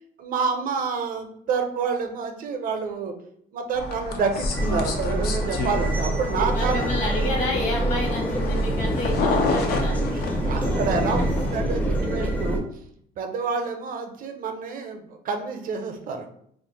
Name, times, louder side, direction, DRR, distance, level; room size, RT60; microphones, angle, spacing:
voice 1, 0.2-3.1 3.5-6.8 10.1-12.6 13.2-16.3, right 5 dB, 55° right, 6 dB, 0.5 m, -28 dB
sound 1, 3.7-11.6, left 4 dB, 65° left, 0.5 m, -31 dB
sound 2, 4.5-12.6, right 1 dB, 10° left, 0.5 m, -25 dB
voice 2, 6.5-10.0, left 1 dB, 45° left, 0 dB, 1.1 m, -29 dB
2.4 x 2.1 x 3.9 m, 0.67 s
cardioid pair, 110°, 17 cm